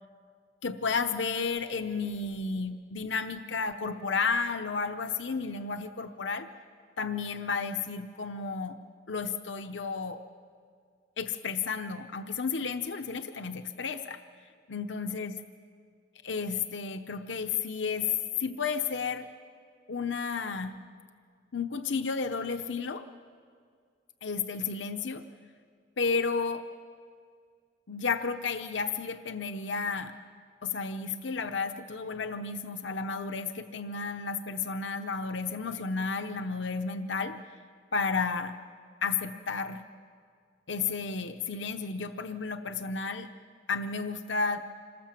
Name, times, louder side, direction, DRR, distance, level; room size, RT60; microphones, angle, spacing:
voice 1, 0.6-6.5 7.0-8.8 9.1-10.2 11.2-14.2 14.7-15.4 16.2-18.1 18.4-19.3 19.9-20.8 21.5-23.1 24.2-25.2 26.0-26.7 27.9-30.1 30.6-37.4 37.9-38.5 39.0-39.8 40.7-43.3 43.7-44.6, left 5 dB, 80° left, 8 dB, 0.8 m, -32 dB
26.5 x 19.0 x 7.5 m, 2.1 s
head